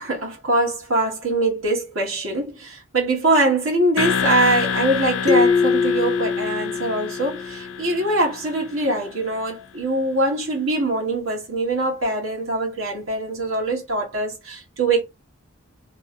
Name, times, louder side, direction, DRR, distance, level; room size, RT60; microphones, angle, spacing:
voice 1, 0.0-15.0, right 2 dB, 75° right, 1.7 m, -23 dB
sound 1, 4.0-8.9, left 7 dB, 75° left, 0.5 m, -28 dB
sound 2, 5.3-7.8, left 5 dB, 15° left, 0.4 m, -22 dB
3.4 x 3.2 x 2.7 m
head